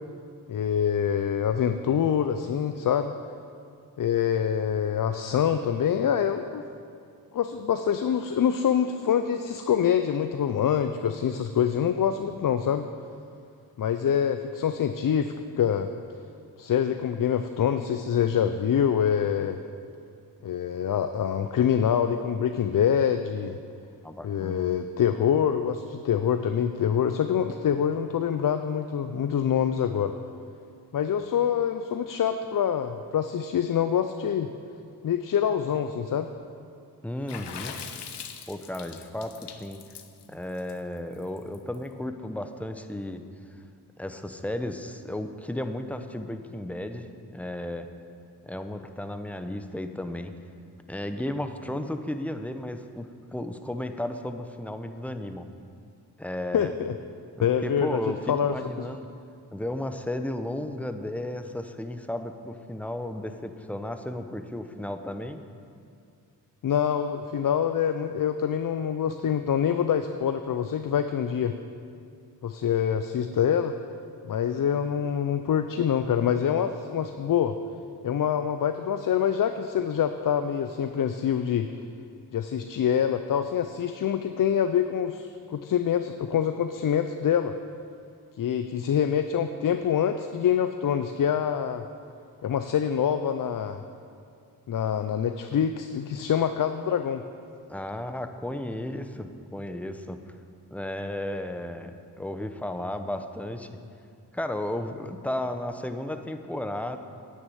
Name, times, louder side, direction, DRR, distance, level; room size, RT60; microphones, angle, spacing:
voice 1, 0.5-3.1 4.0-6.7 7.3-12.9 13.8-15.9 16.6-19.6 20.4-23.6 24.2-30.1 30.9-34.5 35.0-36.3 56.5-56.9 57.4-58.9 66.6-71.6 72.4-73.7 74.2-77.6 78.0-81.8 82.3-87.5 88.4-91.8 92.4-93.8 94.7-97.2, left 8 dB, 55° left, 9 dB, 0.6 m, -25 dB
voice 2, 24.0-24.7 37.0-37.8 38.5-39.8 40.3-43.2 44.0-47.1 47.3-47.9 48.4-50.3 50.9-55.5 56.2-56.7 57.4-59.1 59.5-65.4 97.7-100.2 100.7-103.8 104.3-107.0, left 1 dB, 5° left, 8 dB, 0.8 m, -34 dB
Water / Splash splatter, 37.3-41.8, left 7 dB, 85° left, 0.8 m, -41 dB
9.3 x 6.5 x 8.6 m, 2.4 s
cardioid pair, 50°, 40 cm